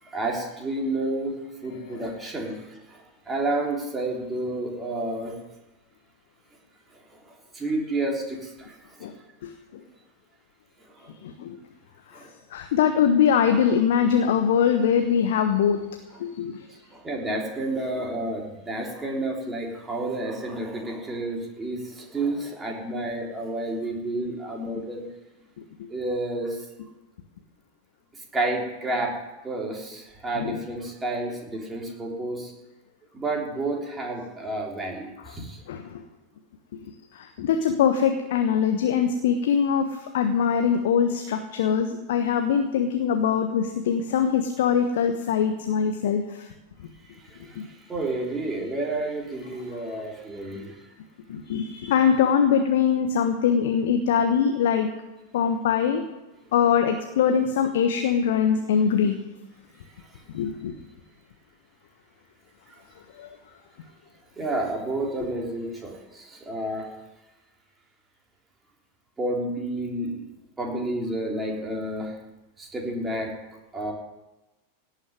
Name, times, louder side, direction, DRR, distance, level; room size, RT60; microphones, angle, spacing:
voice 1, 0.0-1.4 1.6-5.4 6.9-7.0 7.3-9.1 11.0-11.1 12.1-12.3 16.9-25.0 25.9-26.7 28.3-29.1 29.4-32.5 33.1-35.6 47.0-50.9 62.7-62.8 64.4-66.9 69.2-70.3 70.6-72.1 72.6-73.3 73.7-73.9, right 2 dB, 15° right, -1 dB, 3.6 m, -30 dB
voice 2, 9.4-9.8 11.2-11.6 12.1-15.8 16.2-16.6 24.7-24.8 30.4-30.6 35.7-36.0 37.1-46.5 47.5-47.7 51.3-54.9 55.3-56.0 56.5-59.2 60.3-60.7 63.1-63.3, left 7 dB, 55° left, 6 dB, 1.2 m, -23 dB
17.5 x 6.5 x 9.6 m, 1.0 s
figure-of-eight pair, 90°, 0 cm